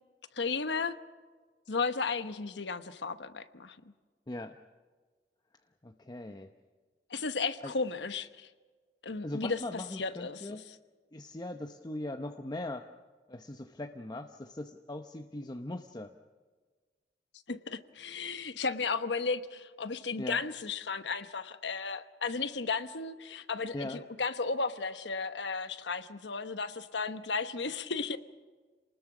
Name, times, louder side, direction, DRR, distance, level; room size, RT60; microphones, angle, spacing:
voice 1, 0.4-1.0 1.7-3.8 7.1-8.5 9.0-10.6 17.5-28.2, left 4 dB, 80° left, 11 dB, 1.1 m, -34 dB
voice 2, 5.8-6.5 7.6-7.7 9.2-10.6 11.1-12.9 13.3-16.1 20.2-20.4 23.7-24.0, left 1 dB, 25° left, 5 dB, 0.8 m, -40 dB
28.0 x 20.0 x 6.1 m, 1.4 s
head